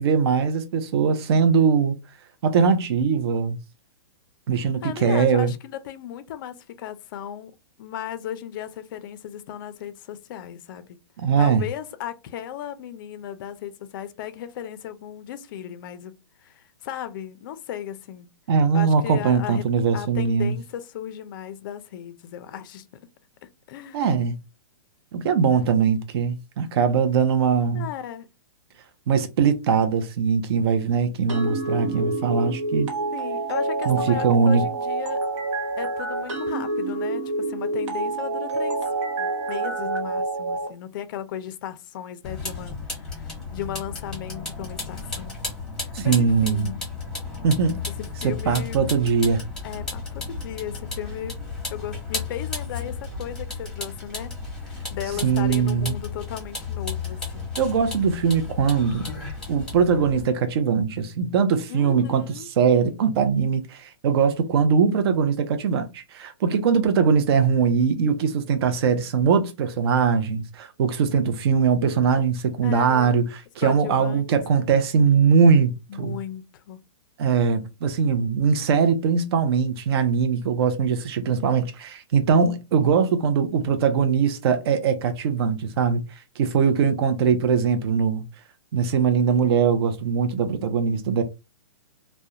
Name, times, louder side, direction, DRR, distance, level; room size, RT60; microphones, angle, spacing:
voice 1, 0.0-1.9 2.4-3.6 4.5-5.5 11.2-11.6 18.5-20.5 23.9-24.4 25.1-27.9 29.1-32.9 33.9-34.6 45.9-46.7 47.4-47.8 48.2-49.4 55.2-55.9 57.6-59.1 59.5-62.2 62.6-76.2 77.2-86.0 86.4-88.2 88.7-91.2, right 6 dB, 55° right, 0.5 m, -21 dB
voice 2, 4.5-7.5 7.8-10.9 11.4-16.2 16.4-18.3 18.7-19.7 19.9-22.9 23.4-24.1 27.7-28.3 33.1-35.2 35.8-38.8 39.2-45.4 45.8-46.9 48.0-48.8 49.6-51.4 51.7-54.3 54.6-57.5 61.7-62.5 72.6-73.1 73.6-74.7 75.9-76.8, left 10 dB, 45° left, 0.4 m, -36 dB
sound 1, 31.3-40.7, right 3 dB, 70° right, 1.2 m, -27 dB
Vehicle, 42.2-60.2, left 4 dB, 5° left, 1.0 m, -34 dB
2.3 x 2.1 x 2.7 m
hypercardioid pair, 150°, 16 cm